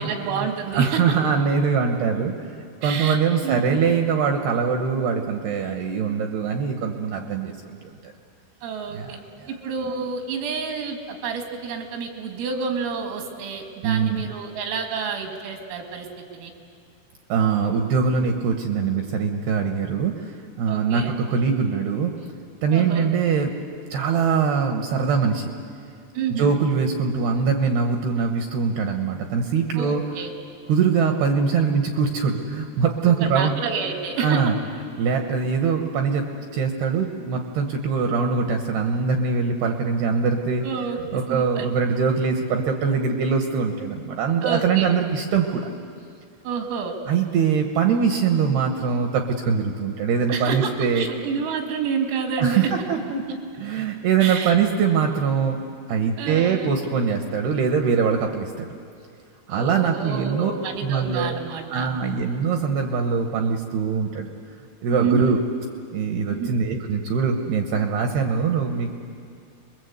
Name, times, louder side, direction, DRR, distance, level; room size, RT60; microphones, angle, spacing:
voice 1, 0.0-1.2 2.8-3.2 3.4-3.8 8.6-9.2 9.5-16.1 16.3-16.5 20.7-21.1 22.7-23.1 26.1-26.6 29.8-30.3 33.0-34.4 40.6-41.7 44.4-45.0 46.4-46.9 50.3-52.7 54.2-54.5 56.2-56.8 59.5-61.9 64.9-65.4 66.3-66.6, right 6 dB, 85° right, 4 dB, 4.8 m, -29 dB
voice 2, 0.7-8.1 8.9-9.5 13.8-14.3 17.3-22.1 22.6-23.5 23.9-25.5 26.3-30.0 30.7-33.6 34.2-34.5 35.0-36.3 36.5-40.6 41.1-45.7 47.1-51.1 52.4-55.6 55.9-58.8 59.5-60.5 60.8-61.3 61.7-64.3 64.8-65.4 65.9-68.9, right 6 dB, 70° right, 4 dB, 2.6 m, -23 dB
29.0 x 21.5 x 8.0 m, 2.3 s
omnidirectional pair, 5.8 m